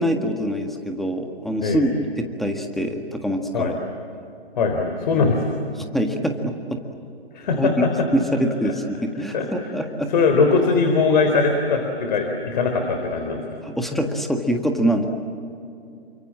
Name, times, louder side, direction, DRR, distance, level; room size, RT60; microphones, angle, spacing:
voice 1, 0.0-3.7 5.1-5.3 5.9-6.8 7.6-7.7 8.1-10.1 13.6-15.1, equal, ahead, 4 dB, 1.7 m, -24 dB
voice 2, 4.6-5.6 7.3-8.1 8.6-8.7 9.3-9.7 10.1-13.4, left 4 dB, 45° left, 4 dB, 3.9 m, -21 dB
29.0 x 25.5 x 7.6 m, 2.6 s
figure-of-eight pair, 140°, 32 cm